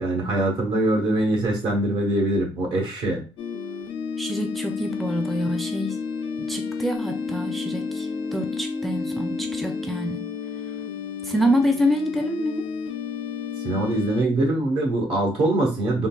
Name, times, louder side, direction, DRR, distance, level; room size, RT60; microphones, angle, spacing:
voice 1, 0.0-3.2 13.6-16.1, right 1 dB, 75° right, 0 dB, 1.1 m, -23 dB
sound 1, 3.4-14.2, left 5 dB, 90° left, 0.4 m, -31 dB
voice 2, 4.2-6.0 6.4-10.3 11.2-12.7, equal, ahead, 4 dB, 0.4 m, -26 dB
3.6 x 2.3 x 2.2 m, 0.34 s
cardioid pair, 120°, 9 cm